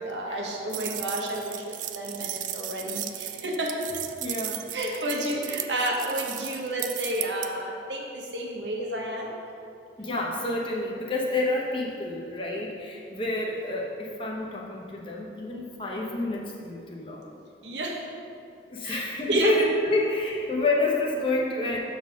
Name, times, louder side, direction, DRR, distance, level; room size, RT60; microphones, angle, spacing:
voice 1, 0.0-3.7 4.7-9.4 17.6-17.9 18.8-19.5, right 1 dB, 90° right, -1 dB, 1.2 m, -30 dB
sound 1, 0.7-7.5, right 12 dB, 45° right, 0.3 m, -35 dB
voice 2, 4.2-4.6 4.9-5.1 10.0-17.3 18.7-21.8, left 2 dB, 30° left, -2 dB, 1.0 m, -29 dB
7.0 x 4.2 x 6.3 m, 2.5 s
head